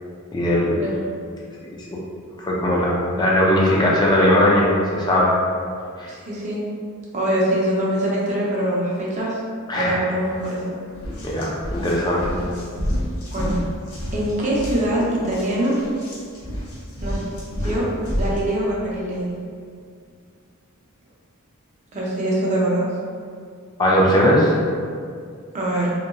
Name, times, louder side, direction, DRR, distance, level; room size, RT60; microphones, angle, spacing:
voice 1, 0.3-0.8 1.6-2.0 2.4-5.3 6.0-6.1 9.7-10.0 11.2-12.3 23.8-24.5, equal, 20° left, -4 dB, 0.4 m, -19 dB
voice 2, 6.1-6.6 7.1-9.4 9.8-10.8 13.3-13.6 14.1-15.8 17.0-17.2 17.6-17.9 18.2-19.3 21.9-22.9 25.5-25.9, right 1 dB, 35° right, -5 dB, 0.5 m, -23 dB
sound 1, 10.3-10.5 10.9-18.4, equal, 85° left, 0.8 m, -29 dB
2.8 x 2.5 x 2.2 m, 2.2 s
head